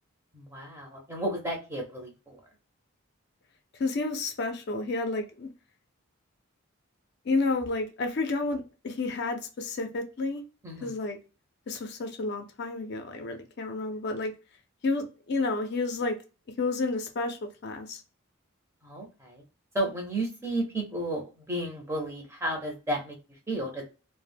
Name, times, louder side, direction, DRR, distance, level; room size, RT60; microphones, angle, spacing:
voice 1, 0.3-2.4 10.6-10.9 18.8-19.4 19.7-23.2 23.5-23.8, right 1 dB, 10° right, 1 dB, 0.5 m, -33 dB
voice 2, 3.8-5.5 7.2-10.4 10.8-11.2 11.7-14.3 14.8-16.2 16.6-18.0, left 3 dB, 50° left, 5 dB, 0.4 m, -30 dB
2.1 x 2.0 x 3.3 m, 0.33 s
head